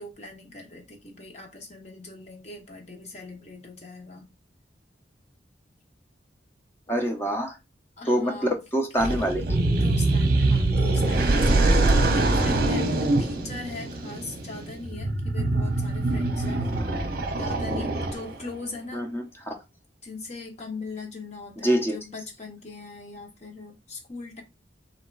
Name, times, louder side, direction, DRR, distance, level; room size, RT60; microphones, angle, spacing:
voice 1, 0.0-4.3 6.9-7.2 8.0-8.6 9.0-9.3 9.7-16.6 17.3-19.1 20.0-24.4, left 3 dB, 35° left, 1.2 m, -40 dB
voice 2, 6.9-7.6 8.1-9.4 18.9-19.6 21.6-22.0, equal, 15° left, 0.8 m, -25 dB
sound 1, 9.0-18.5, right 2 dB, 50° right, 0.8 m, -24 dB
3.6 x 2.8 x 4.6 m
head